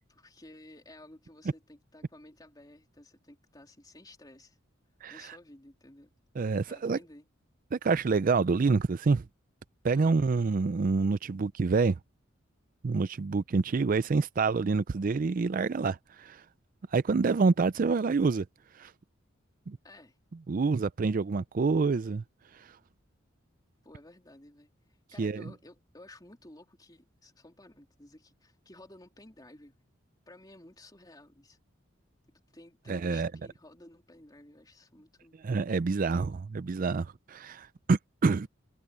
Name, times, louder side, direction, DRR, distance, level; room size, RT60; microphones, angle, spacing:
voice 1, 0.1-4.6 5.1-6.1 6.7-7.3 9.9-10.2 19.8-20.2 23.8-24.7 25.1-29.9 30.3-31.6 32.5-35.4 35.9-36.3, left 1 dB, 20° left, 3.2 m, -54 dB
voice 2, 6.4-7.0 7.7-9.2 9.8-12.0 12.8-16.4 16.9-18.5 18.8-18.9 19.7-19.8 20.5-22.2 22.6-22.7 25.2-25.4 32.9-33.3 35.4-38.5, right 4 dB, 45° right, 0.4 m, -27 dB
head